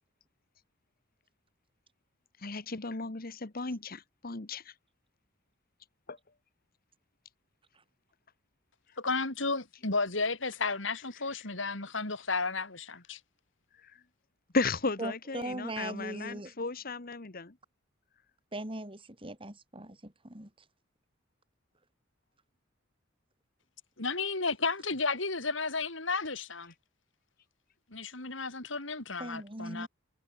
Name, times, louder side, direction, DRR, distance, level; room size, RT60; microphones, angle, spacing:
voice 1, 2.4-4.7 6.1-6.2 11.1-11.5 13.8-13.9 14.5-17.5, left 3 dB, 50° left, 1.4 m, -35 dB
voice 2, 9.0-13.2 24.0-26.7 27.9-29.9, left 4 dB, 70° left, 4.4 m, -33 dB
voice 3, 15.0-16.5 18.5-20.5 29.2-29.9, right 1 dB, 25° right, 4.9 m, -39 dB
head